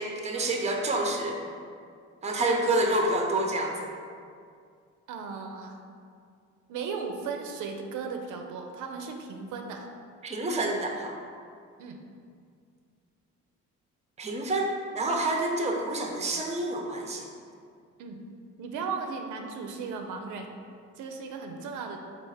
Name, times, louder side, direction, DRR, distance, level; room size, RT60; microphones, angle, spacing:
voice 1, 0.0-1.4 2.2-3.8 10.2-11.1 14.2-17.3, right 2 dB, 20° right, 2 dB, 0.6 m, -28 dB
voice 2, 5.1-5.8 6.7-9.9 11.8-12.0 18.0-18.2 18.6-20.5 21.0-22.0, right 5 dB, 80° right, 3 dB, 0.5 m, -36 dB
4.4 x 2.4 x 4.8 m, 2.3 s
cardioid pair, 90°, 30 cm